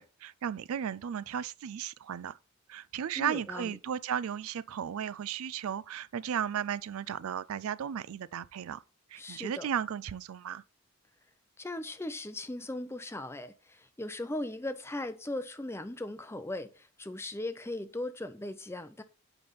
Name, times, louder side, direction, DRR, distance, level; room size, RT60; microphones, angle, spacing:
voice 1, 0.0-2.4 2.7-8.8 9.1-10.6, right 8 dB, 75° right, 0.4 m, -35 dB
voice 2, 3.2-3.8 9.2-9.7 11.6-19.0, left 1 dB, 10° left, 0.5 m, -38 dB
9.0 x 3.5 x 5.7 m
head